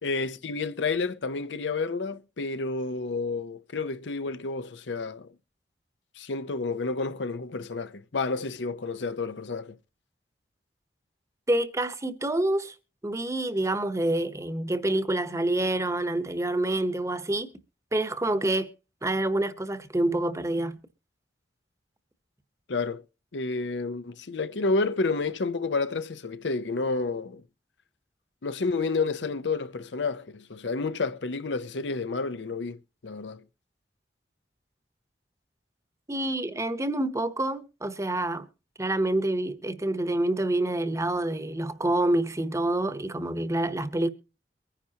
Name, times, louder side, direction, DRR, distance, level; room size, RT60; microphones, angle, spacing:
voice 1, 0.0-5.3 6.2-9.8 22.7-23.0 23.3-27.4 28.4-33.4, left 3 dB, 85° left, 0.7 m, -30 dB
voice 2, 11.5-12.7 13.0-17.5 17.9-18.7 19.0-20.8 36.1-38.5 38.8-44.1, right 1 dB, 15° right, 0.9 m, -27 dB
23.5 x 10.0 x 2.8 m
head